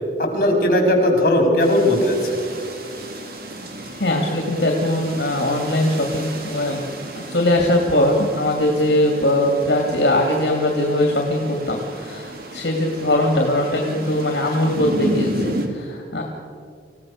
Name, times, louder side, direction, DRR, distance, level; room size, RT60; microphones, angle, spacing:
voice 1, 0.2-2.4, left 1 dB, 50° left, 2 dB, 5.2 m, -17 dB
sound 1, 1.6-15.7, right 1 dB, 55° right, 2.5 m, -32 dB
voice 2, 4.0-6.8 7.3-16.2, left 1 dB, 70° left, 1 dB, 2.6 m, -20 dB
27.0 x 16.5 x 6.6 m, 2.2 s
head